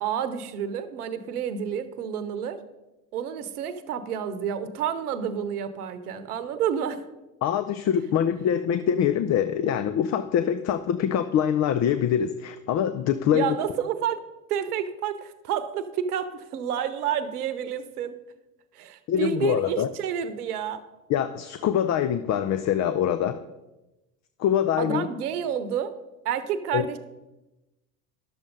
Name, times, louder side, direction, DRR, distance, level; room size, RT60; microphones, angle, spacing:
voice 1, 0.0-2.6 3.1-7.1 13.3-14.2 14.5-18.2 18.7-20.8 24.8-25.9 26.2-27.0, right 8 dB, 85° right, 12 dB, 0.9 m, -29 dB
voice 2, 7.4-13.6 19.1-19.9 21.1-23.4 24.4-25.1 26.7-26.9, left 9 dB, 40° left, 12 dB, 0.6 m, -24 dB
11.0 x 7.1 x 5.2 m, 1.0 s
hypercardioid pair, 85°, 45 cm